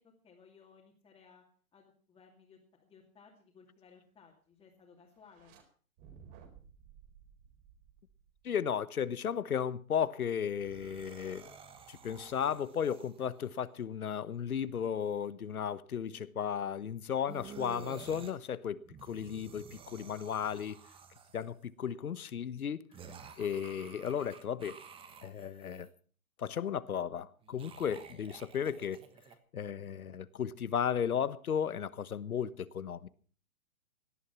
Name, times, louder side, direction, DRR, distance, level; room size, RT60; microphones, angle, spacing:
voice 1, 0.0-1.4 1.7-5.5, left 5 dB, 10° left, 2.5 m, -60 dB
sound 1, 5.2-5.6 6.0-8.5, right 7 dB, 40° right, 4.5 m, -57 dB
voice 2, 8.4-11.5 11.9-20.8 21.3-22.9 23.4-24.8 25.2-25.9 26.4-29.0 29.5-33.1, left 8 dB, 80° left, 1.3 m, -35 dB
sound 2, 10.5-13.6 17.3-18.3 18.8-21.6 22.9-25.9 27.4-29.4, right 6 dB, 10° right, 1.3 m, -52 dB
17.5 x 11.5 x 5.8 m
hypercardioid pair, 140°, 43 cm